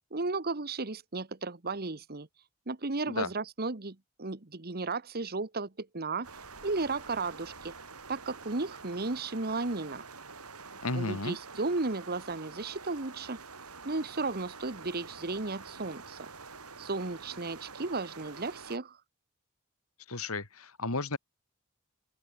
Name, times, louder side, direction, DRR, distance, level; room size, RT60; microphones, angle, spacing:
voice 1, 0.1-2.3 2.7-6.3 6.6-7.7 8.1-10.0 10.9-13.4 13.8-16.3 16.8-19.0, right 3 dB, 45° right, 1.4 m, -34 dB
sound 1, 6.2-18.8, right 4 dB, 80° right, 6.0 m, -47 dB
voice 2, 10.8-11.4 20.1-21.2, left 3 dB, 75° left, 3.0 m, -33 dB
open air
head